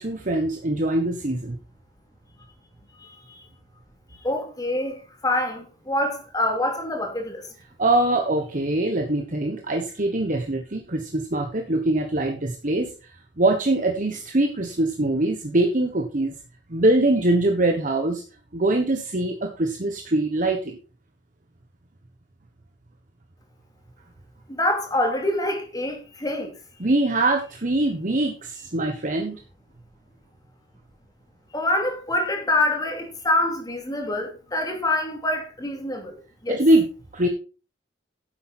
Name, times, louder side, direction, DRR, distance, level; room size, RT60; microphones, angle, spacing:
voice 1, 0.0-1.6 7.8-13.1 13.4-16.3 16.7-18.2 18.5-20.8 26.8-29.4 36.5-36.9 37.1-37.3, right 2 dB, 45° right, 1.3 m, -23 dB
voice 2, 3.0-3.5 4.2-5.0 5.2-7.5 24.5-26.5 31.5-36.6, left 1 dB, 20° left, 2.7 m, -26 dB
10.5 x 7.8 x 4.4 m
head